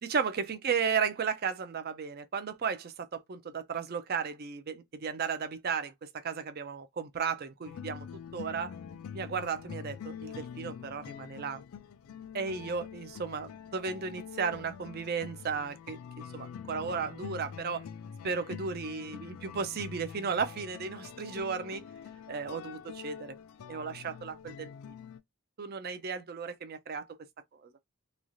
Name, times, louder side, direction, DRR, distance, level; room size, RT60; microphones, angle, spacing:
voice 1, 0.0-8.1 8.3-8.7 9.1-11.6 12.3-17.8 18.2-21.8 22.3-23.3 23.7-24.7 25.6-27.1 27.6-27.7, right 6 dB, 45° right, 0.4 m, -34 dB
sound 1, 7.6-25.2, left 7 dB, 70° left, 0.3 m, -45 dB
3.0 x 2.4 x 2.5 m
head